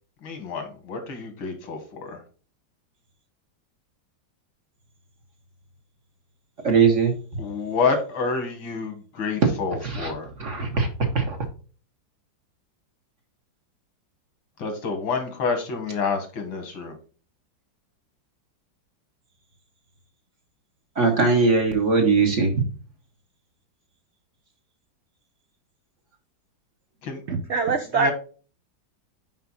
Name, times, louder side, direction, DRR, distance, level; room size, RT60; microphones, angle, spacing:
voice 1, 0.2-2.2 7.4-10.3 14.6-17.0 27.0-27.2 27.9-28.1, left 4 dB, 85° left, 5 dB, 2.3 m, -28 dB
voice 2, 6.6-7.1 9.8-10.1 10.4-11.4 21.0-22.6, right 4 dB, 45° right, 4 dB, 1.2 m, -20 dB
voice 3, 27.3-28.1, right 4 dB, 80° right, 6 dB, 0.6 m, -23 dB
5.7 x 5.2 x 4.0 m, 0.38 s
omnidirectional pair, 2.1 m